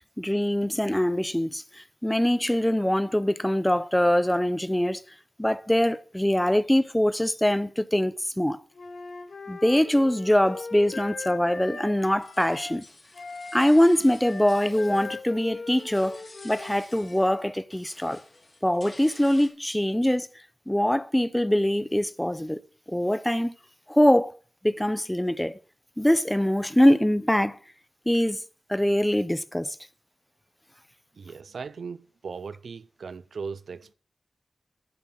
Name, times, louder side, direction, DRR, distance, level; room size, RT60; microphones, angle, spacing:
voice 1, 0.2-5.0 5.4-8.6 9.5-12.8 13.5-18.2 18.6-20.3 20.7-22.6 22.9-23.5 23.9-24.4 24.6-25.6 26.0-27.6 28.1-28.4 28.7-29.8, left 1 dB, 5° left, 0.5 m, -23 dB
Wind instrument woodwind instrument, 8.7-12.8 13.1-17.4, left 4 dB, 65° left, 3.0 m, -40 dB
sound 1, 12.1-15.4 15.7-17.4 17.7-19.5, left 2 dB, 30° left, 3.5 m, -51 dB
voice 2, 31.2-33.9, right 5 dB, 80° right, 0.5 m, -38 dB
11.0 x 7.5 x 6.2 m
wide cardioid pair, 130°, 0 cm